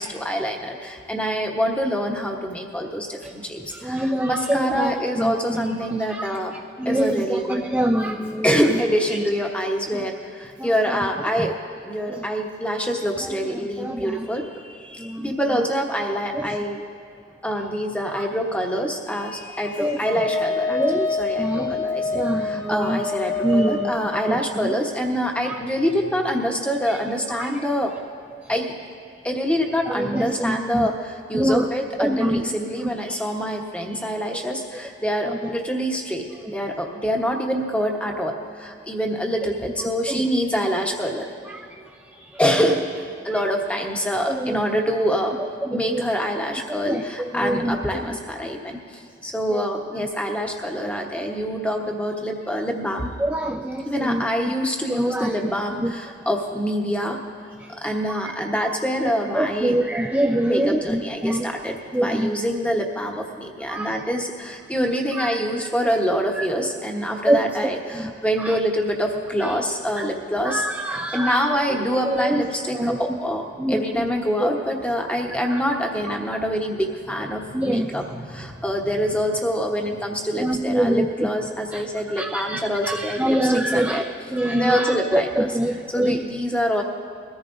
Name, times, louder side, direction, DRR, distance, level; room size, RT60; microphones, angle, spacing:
voice 1, 0.0-6.5 6.8-7.7 8.4-11.6 11.8-16.8 17.4-27.9 28.5-28.7 29.2-36.3 36.5-41.3 42.4-45.4 45.7-53.1 53.8-57.2 57.8-59.8 60.4-70.7 71.1-84.0 84.5-85.5 85.9-86.8, equal, 5° left, 1 dB, 1.0 m, -25 dB
voice 2, 3.7-6.3 6.8-8.8 10.6-10.7 11.0-11.1 11.4-11.5 12.1-12.2 13.5-14.3 15.0-15.3 16.3-16.6 18.2-18.3 19.8-20.1 20.7-21.1 21.4-21.8 22.1-23.0 23.4-23.9 24.3-24.8 25.4-25.5 27.3-27.5 29.9-30.9 31.3-31.7 32.0-32.4 34.3-34.4 35.3-35.4 36.4-36.5 40.1-40.3 41.5-41.6 42.2-42.4 43.3-43.4 44.3-44.6 45.6-46.0 46.8-48.0 49.5-49.6 50.0-50.1 53.2-54.5 54.9-55.5 55.8-55.9 58.2-58.3 59.4-61.5 61.9-62.3 63.7-63.9 65.1-65.4 66.4-66.5 67.3-67.4 67.9-68.1 68.4-68.6 69.4-69.5 70.0-70.1 70.4-71.5 72.0-72.4 72.7-73.2 73.6-73.8 74.4-74.5 75.5-75.6 76.1-76.2 77.5-77.9 80.4-81.3 81.7-81.8 82.2-84.0 84.3-86.2, right 1 dB, 10° right, 2 dB, 0.4 m, -25 dB
Wind instrument woodwind instrument, 20.0-24.5, left 3 dB, 25° left, 1.4 m, -26 dB
21.5 x 14.0 x 2.6 m, 2.5 s
head